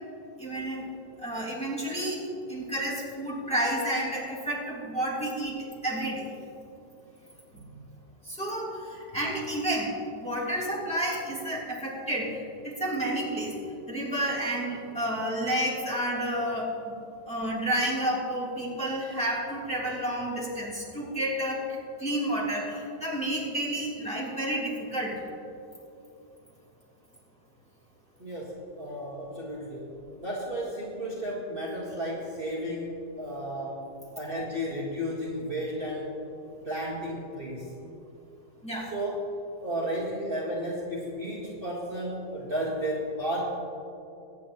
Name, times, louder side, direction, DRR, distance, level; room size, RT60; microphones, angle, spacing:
voice 1, 0.4-0.9 1.2-6.3 7.5-7.6 8.3-13.5 13.9-16.9 17.3-21.7 22.0-25.2 38.6-38.9, right 1 dB, 5° left, -7 dB, 2.9 m, -30 dB
voice 2, 28.2-36.3 36.6-37.7 38.8-43.6, equal, 35° right, -6 dB, 1.9 m, -33 dB
22.5 x 9.6 x 3.0 m, 2.8 s
omnidirectional pair, 1.8 m